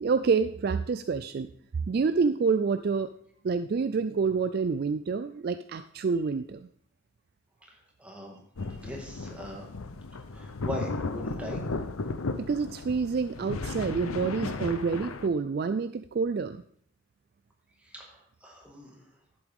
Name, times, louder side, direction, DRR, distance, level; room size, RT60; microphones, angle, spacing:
voice 1, 0.0-1.5 1.9-3.1 3.4-6.7 12.4-16.6, right 5 dB, 45° right, 11 dB, 0.3 m, -28 dB
voice 2, 8.0-8.4 8.8-9.7 10.3-11.6 17.8-19.0, equal, 5° right, -1 dB, 1.8 m, -40 dB
sound 1, 8.6-15.3, left 3 dB, 85° left, 0.7 m, -35 dB
11.0 x 7.9 x 3.6 m, 0.64 s
head